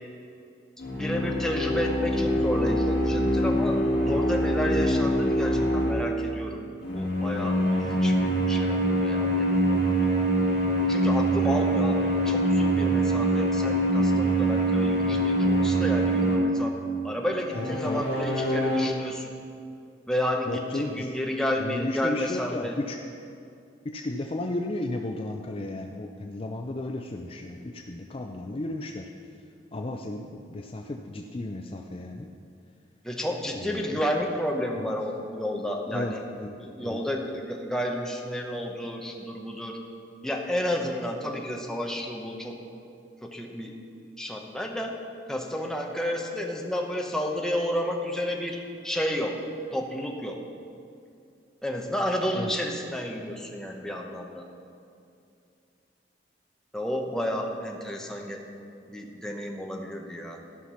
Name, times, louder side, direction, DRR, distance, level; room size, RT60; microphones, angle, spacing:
sound 1, 0.8-6.1 6.8-16.7 17.5-18.9, right 1 dB, 70° left, 1.9 m, -24 dB
voice 1, 0.9-6.6 6.9-10.0 10.9-16.8 17.0-19.3 20.1-22.8 33.0-36.2 36.6-39.8 40.2-42.6 43.2-43.7 44.2-45.0 45.3-49.4 49.7-50.4 51.6-54.5 56.7-58.4 58.9-60.4, left 1 dB, 5° left, 0 dB, 0.9 m, -31 dB
voice 2, 17.5-18.0 20.5-23.0 23.8-29.1 29.7-32.3 33.5-34.0 34.8-34.9 35.9-36.6 36.8-37.0 52.3-52.5, left 2 dB, 30° left, 3 dB, 0.4 m, -34 dB
14.0 x 5.8 x 5.7 m, 2.5 s
head